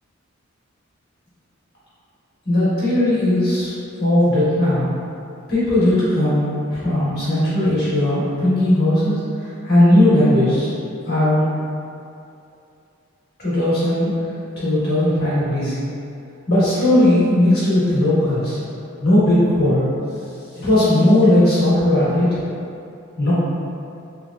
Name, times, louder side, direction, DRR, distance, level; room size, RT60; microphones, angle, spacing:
voice 1, 2.4-3.7 4.0-4.9 5.5-9.1 9.4-10.7 11.0-11.4 13.4-14.1 14.6-15.8 16.5-18.6 19.0-19.8 20.5-22.3 23.2-23.3, left 1 dB, 55° left, -12 dB, 1.5 m, -17 dB
3.4 x 3.3 x 2.5 m, 2.6 s
head